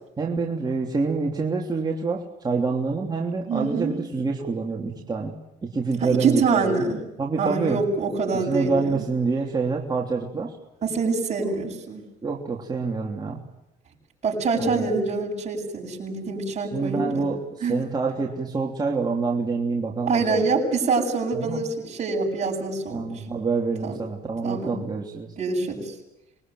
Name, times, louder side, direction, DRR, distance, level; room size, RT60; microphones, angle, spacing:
voice 1, 0.2-5.3 5.6-6.9 7.2-7.8 8.5-10.6 12.2-13.4 14.6-14.8 16.7-20.4 21.3-21.6 22.9-25.3, right 4 dB, 25° right, -1 dB, 3.2 m, -26 dB
voice 2, 3.5-4.0 6.0-7.0 7.4-9.0 10.8-12.0 14.2-17.3 17.6-17.8 20.1-23.2 23.8-24.0 24.4-24.8 25.4-25.9, right 4 dB, 40° right, -5 dB, 7.9 m, -25 dB
26.0 x 21.5 x 9.4 m, 0.89 s
cardioid pair, 110°, 17 cm